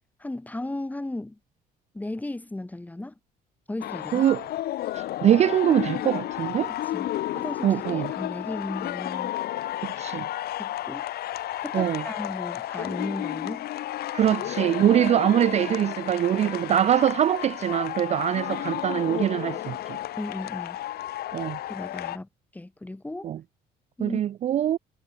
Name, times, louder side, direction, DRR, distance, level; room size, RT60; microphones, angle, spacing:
voice 1, 0.2-1.4 1.9-3.1 3.7-4.3 6.7-9.4 10.6-11.1 11.6-13.7 14.3-14.4 20.2-20.8 21.7-23.3 24.0-24.2, left 2 dB, 10° left, 2.6 m, -35 dB
sound 1, 3.8-22.2, left 14 dB, 65° left, 1.5 m, -32 dB
voice 2, 4.9-6.7 7.6-8.1 10.0-10.3 11.7-12.0 14.1-20.0 21.3-21.6 23.2-23.4 24.0-24.8, right 11 dB, 40° right, 0.4 m, -23 dB
cardioid pair, 110°, 17 cm